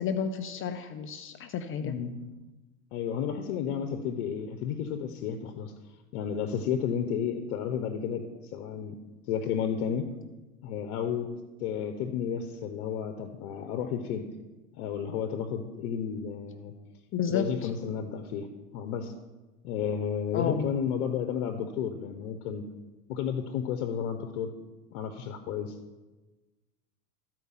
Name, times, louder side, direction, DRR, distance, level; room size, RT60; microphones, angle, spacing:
voice 1, 0.0-2.0 17.1-17.7 20.3-20.7, left 7 dB, 30° left, 8 dB, 0.5 m, -31 dB
voice 2, 1.8-2.2 2.9-5.7 6.1-8.3 8.5-9.0 9.3-10.1 10.6-11.3 11.6-14.3 14.7-16.7 17.3-18.5 18.7-19.1 19.6-22.6 23.1-24.5 24.9-25.7, left 8 dB, 65° left, 8 dB, 0.9 m, -32 dB
13.5 x 4.7 x 5.7 m, 1.2 s
hypercardioid pair, 100°, 43 cm